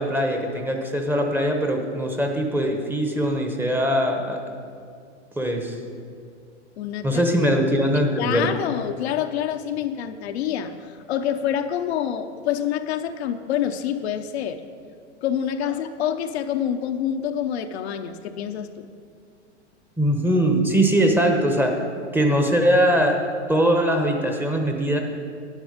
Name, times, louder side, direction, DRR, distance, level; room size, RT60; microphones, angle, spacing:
voice 1, 0.0-4.4 5.4-5.8 7.0-8.5 20.0-21.7 22.1-23.2 23.5-25.0, equal, 5° right, 3 dB, 0.9 m, -21 dB
voice 2, 6.8-7.2 8.2-14.6 15.2-18.9, left 9 dB, 60° left, 7 dB, 0.7 m, -27 dB
11.0 x 8.9 x 5.1 m, 2.2 s
hypercardioid pair, 115°, 36 cm